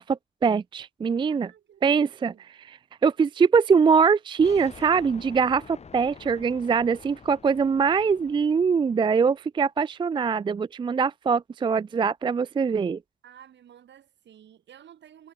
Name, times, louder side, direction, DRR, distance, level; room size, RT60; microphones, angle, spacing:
voice 1, 0.0-1.5 1.8-2.3 2.6-5.6 5.9-13.0, right 5 dB, 25° right, 0.4 m, -23 dB
voice 2, 1.3-2.4 5.6-5.9 13.2-15.3, right 10 dB, 65° right, 4.0 m, -53 dB
sound 1, 4.4-9.3, left 5 dB, 35° left, 1.6 m, -48 dB
cardioid pair, 90°, 20 cm